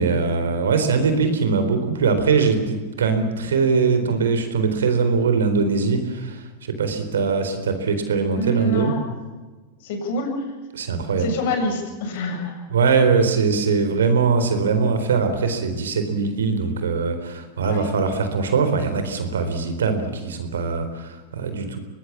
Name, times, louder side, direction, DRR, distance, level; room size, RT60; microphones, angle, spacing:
voice 1, 0.0-6.5 6.8-8.9 10.7-11.3 12.7-21.9, right 5 dB, 85° right, 8 dB, 4.2 m, -21 dB
voice 2, 8.3-9.0 9.8-10.4 11.2-12.6 17.6-17.8, equal, 65° left, 3 dB, 7.9 m, -26 dB
24.5 x 19.5 x 7.4 m, 1.3 s
hypercardioid pair, 110°, 0 cm